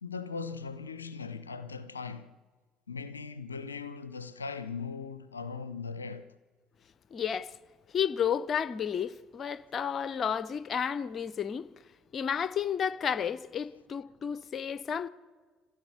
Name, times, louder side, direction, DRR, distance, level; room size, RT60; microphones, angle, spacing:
voice 1, 0.0-2.3 2.9-6.4, left 5 dB, 80° left, 0.5 m, -39 dB
voice 2, 7.1-7.6 7.9-11.7 12.1-15.1, left 8 dB, 40° left, 0.6 m, -32 dB
26.5 x 15.5 x 6.8 m
figure-of-eight pair, 55°, 0 cm